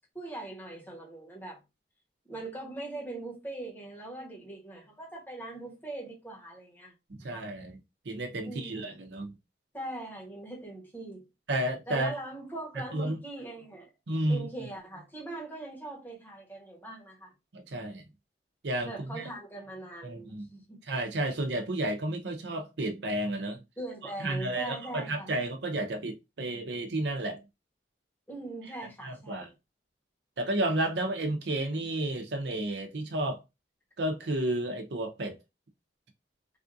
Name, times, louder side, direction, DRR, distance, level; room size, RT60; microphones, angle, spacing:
voice 1, 0.1-1.6 2.3-6.9 7.2-7.4 8.4-9.1 9.7-11.2 11.9-13.9 14.3-17.3 18.8-20.8 23.8-25.3 28.3-29.5, right 2 dB, 10° left, 1.2 m, -41 dB
voice 2, 7.1-7.8 8.0-9.4 11.5-12.1 12.7-13.2 14.1-14.5 17.5-18.0 18.6-19.3 20.0-20.5 20.8-23.6 24.0-27.4 28.6-28.7 29.0-29.5 30.4-33.4 34.0-35.4, right 1 dB, 75° right, 0.7 m, -32 dB
3.4 x 2.4 x 2.6 m
head